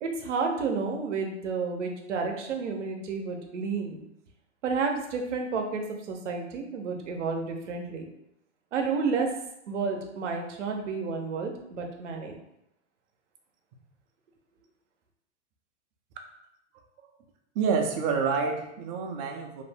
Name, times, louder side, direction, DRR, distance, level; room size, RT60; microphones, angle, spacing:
voice 1, 0.0-4.0 4.6-5.8 6.1-8.0 8.7-9.3 9.7-12.3, right 4 dB, 85° right, 3 dB, 0.6 m, -31 dB
voice 2, 17.6-19.6, right 5 dB, 40° right, 3 dB, 0.4 m, -28 dB
2.5 x 2.0 x 3.3 m, 0.81 s
hypercardioid pair, 120°, 35 cm